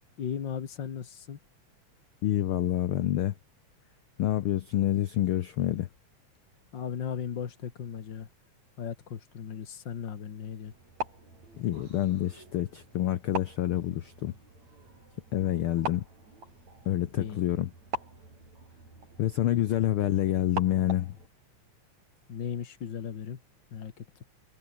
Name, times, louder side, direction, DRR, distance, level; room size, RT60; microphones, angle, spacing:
voice 1, 0.2-1.4 6.7-8.3 8.8-10.7 17.1-17.4 22.3-23.4 23.7-24.1, left 7 dB, 45° left, 2.0 m, -36 dB
voice 2, 2.2-3.3 4.2-5.9 11.6-14.3 15.3-16.0 16.9-17.7 19.2-21.2, left 13 dB, 80° left, 1.2 m, -27 dB
sound 1, 10.7-21.3, right 3 dB, 60° right, 9.5 m, -42 dB
omnidirectional pair, 3.5 m